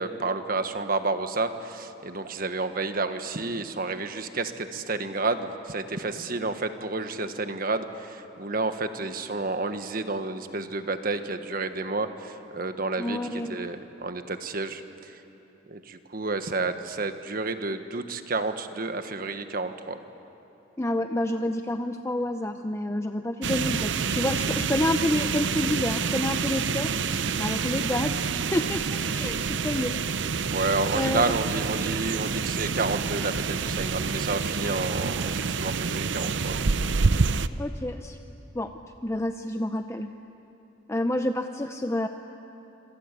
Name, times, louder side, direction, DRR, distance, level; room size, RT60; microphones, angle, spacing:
voice 1, 0.0-15.2 15.7-20.0 30.5-36.6, right 3 dB, 50° right, 8 dB, 1.4 m, -30 dB
voice 2, 13.0-13.6 20.8-26.9 27.4-30.0 30.9-31.2 37.6-38.2 38.5-38.7 39.0-40.1 40.9-42.1, left 1 dB, 15° left, 6 dB, 0.6 m, -28 dB
sound 1, 23.4-37.5, right 5 dB, 70° right, 0.7 m, -27 dB
27.0 x 26.5 x 8.4 m, 2.9 s
head